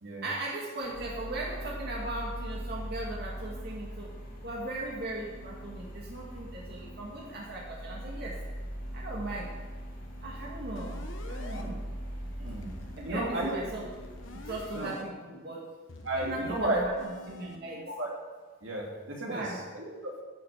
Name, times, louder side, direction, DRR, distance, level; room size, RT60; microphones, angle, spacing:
voice 1, 0.2-4.2 4.4-8.4 8.9-9.5 10.2-11.0 11.3-11.7 13.0-13.8 14.3-15.7 16.1-17.8 19.3-19.6, right 2 dB, 55° right, -4 dB, 1.9 m, -38 dB
sound 1, 0.8-14.7, equal, 45° left, 2.7 m, -41 dB
sound 2, 10.8-11.6 12.5-15.0 15.9-17.6, left 2 dB, 70° left, 1.1 m, -47 dB
voice 2, 13.0-13.5 13.8-13.9 14.7-14.9 16.0-16.8 17.9-18.1 18.6-19.5 19.7-20.2, right 1 dB, 70° right, -2 dB, 2.7 m, -33 dB
10.5 x 6.7 x 7.1 m, 1.3 s
head